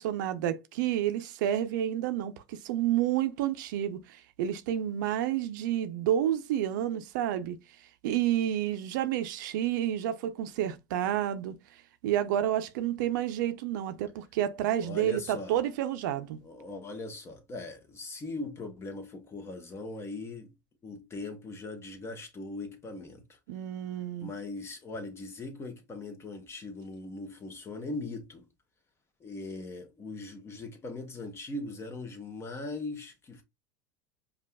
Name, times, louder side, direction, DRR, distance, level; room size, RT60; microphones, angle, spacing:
voice 1, 0.0-7.6 8.0-11.6 12.0-16.4 23.5-24.3, right 11 dB, 75° right, 0.6 m, -30 dB
voice 2, 14.8-15.6 16.4-20.5 20.8-23.4 24.2-28.5 29.2-33.4, left 2 dB, 25° left, 1.1 m, -40 dB
5.2 x 2.4 x 2.3 m
supercardioid pair, 110°, 10 cm